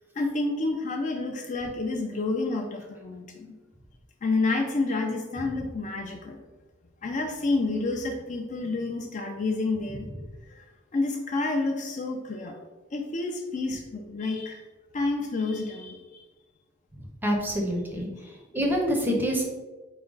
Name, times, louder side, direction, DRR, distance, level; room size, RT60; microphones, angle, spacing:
voice 1, 0.2-3.5 4.2-6.4 7.0-10.1 10.5-10.7 10.9-12.6 12.9-14.6 14.9-16.2, left 3 dB, 35° left, 3 dB, 0.4 m, -29 dB
voice 2, 17.2-18.1 18.5-19.4, equal, 10° right, -1 dB, 0.6 m, -26 dB
4.9 x 2.1 x 3.8 m, 1.2 s
head